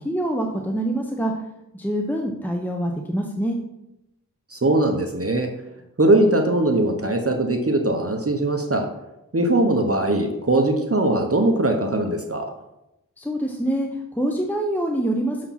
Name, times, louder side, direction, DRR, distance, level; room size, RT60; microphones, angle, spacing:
voice 1, 0.0-1.4 1.7-3.6 13.2-15.5, right 1 dB, 5° left, 2 dB, 0.9 m, -25 dB
voice 2, 4.5-5.5 6.0-8.9 9.3-12.5, right 2 dB, 40° right, 3 dB, 1.0 m, -20 dB
6.9 x 4.8 x 5.8 m, 0.88 s
wide cardioid pair, 45°, 34 cm